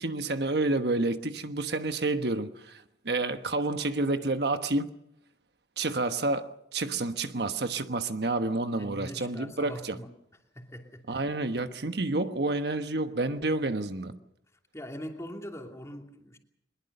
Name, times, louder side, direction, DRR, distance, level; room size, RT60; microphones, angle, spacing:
voice 1, 0.0-4.9 5.8-10.0 11.1-14.2, right 2 dB, 65° right, 1.2 m, -29 dB
voice 2, 8.7-10.1 10.5-11.2 14.7-16.4, equal, 15° left, 2.7 m, -42 dB
22.5 x 21.0 x 6.8 m
head